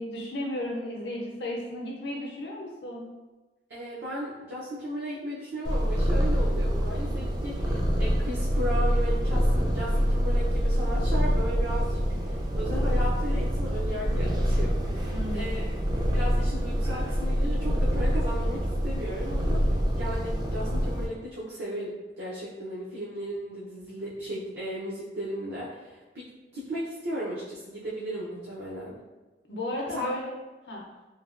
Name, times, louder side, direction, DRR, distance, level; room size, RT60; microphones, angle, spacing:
voice 1, 0.0-3.1 15.1-15.7 29.5-30.3 30.6-30.8, left 1 dB, 70° left, -2 dB, 0.5 m, -34 dB
voice 2, 3.7-15.6 16.1-26.2 26.5-29.0 29.9-30.1, equal, 70° right, -7 dB, 0.6 m, -35 dB
Purr, 5.6-21.1, equal, 25° right, 0.3 m, -26 dB
3.2 x 2.2 x 2.4 m, 1.1 s
head